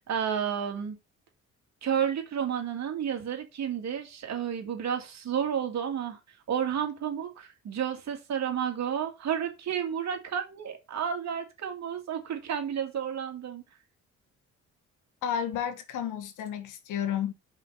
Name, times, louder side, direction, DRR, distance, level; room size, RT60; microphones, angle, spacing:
voice 1, 0.1-1.0 1.8-6.2 6.5-13.6, right 8 dB, 60° right, 2.3 m, -31 dB
voice 2, 15.2-17.3, left 9 dB, 85° left, 1.6 m, -31 dB
5.6 x 4.8 x 5.7 m
cardioid pair, 90°, 30 cm